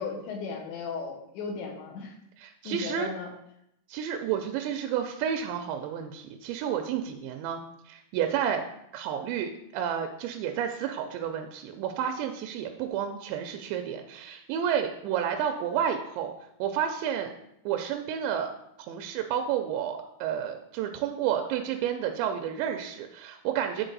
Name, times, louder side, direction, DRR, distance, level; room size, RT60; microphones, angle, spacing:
voice 1, 0.0-2.2 2.6-3.3, left 4 dB, 80° left, 2 dB, 3.3 m, -36 dB
voice 2, 2.4-3.1 3.9-8.6 8.9-16.3 16.6-17.3 17.7-18.5 18.9-23.8, right 9 dB, 85° right, 6 dB, 2.7 m, -30 dB
10.0 x 4.2 x 3.9 m, 0.79 s
omnidirectional pair, 5.0 m